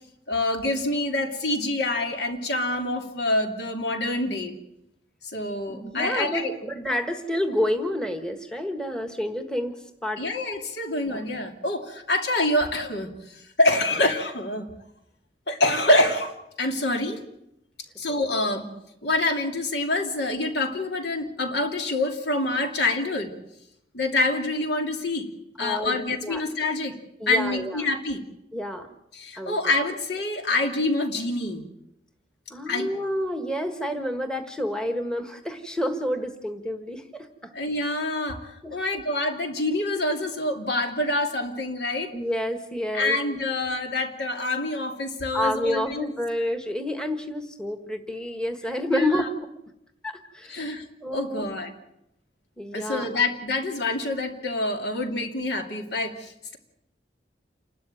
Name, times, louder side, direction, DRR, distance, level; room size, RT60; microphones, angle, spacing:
voice 1, 0.3-4.5 5.2-6.5 10.2-14.7 15.5-16.3 16.6-17.2 18.0-18.7 19.0-23.3 23.9-26.9 27.3-28.2 29.1-31.6 32.7-32.9 37.5-42.1 42.9-46.1 48.9-49.2 50.5-50.8 51.1-51.7 52.7-56.6, left 2 dB, 65° left, 5 dB, 2.8 m, -26 dB
voice 2, 5.7-10.2 11.0-11.2 18.1-18.2 25.6-26.0 26.2-26.4 27.2-27.8 28.5-28.9 29.4-29.5 32.5-37.5 38.6-38.8 42.1-43.2 45.3-49.5 50.0-50.7 51.0-51.5 52.6-53.1, left 1 dB, 5° left, 7 dB, 1.4 m, -29 dB
28.5 x 13.0 x 9.1 m, 0.84 s
head